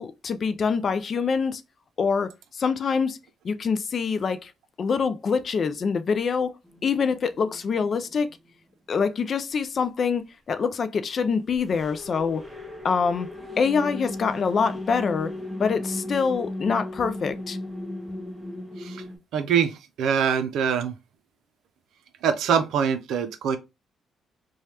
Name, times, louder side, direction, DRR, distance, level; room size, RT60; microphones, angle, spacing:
voice 1, 0.0-1.6 2.0-3.2 3.4-4.5 4.8-6.5 6.8-8.3 8.9-12.4 12.8-13.3 13.6-15.3 15.6-17.6, left 5 dB, 50° left, 0.4 m, -25 dB
sound 1, 6.6-8.5 11.5-19.2, left 1 dB, 10° right, 0.8 m, -36 dB
voice 2, 19.3-21.0 22.2-23.6, right 7 dB, 80° right, 0.5 m, -24 dB
3.2 x 2.3 x 2.8 m
cardioid pair, 90°, 0 cm